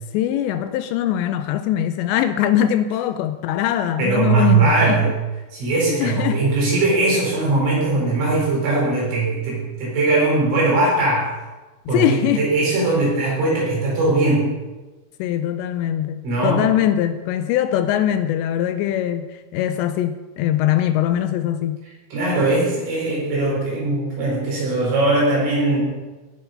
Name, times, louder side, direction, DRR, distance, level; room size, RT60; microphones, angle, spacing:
voice 1, 0.1-5.1 5.9-6.4 11.9-12.5 15.2-21.8, left 11 dB, 80° left, 2.8 m, -22 dB
voice 2, 4.0-5.2 5.5-11.3 11.9-14.5 16.2-16.7 22.1-25.8, right 3 dB, 80° right, 7.2 m, -20 dB
18.0 x 6.8 x 5.5 m
omnidirectional pair, 5.2 m